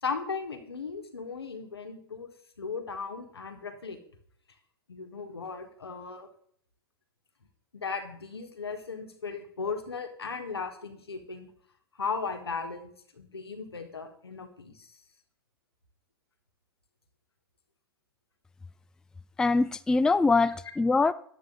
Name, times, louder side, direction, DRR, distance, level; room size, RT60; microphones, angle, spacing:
voice 1, 0.0-2.3 2.6-4.0 4.9-6.3 7.7-11.5 12.0-14.9, left 5 dB, 90° left, 1.5 m, -36 dB
voice 2, 19.4-21.1, left 3 dB, 5° left, 0.3 m, -23 dB
9.9 x 8.2 x 3.9 m
hypercardioid pair, 105°, 13 cm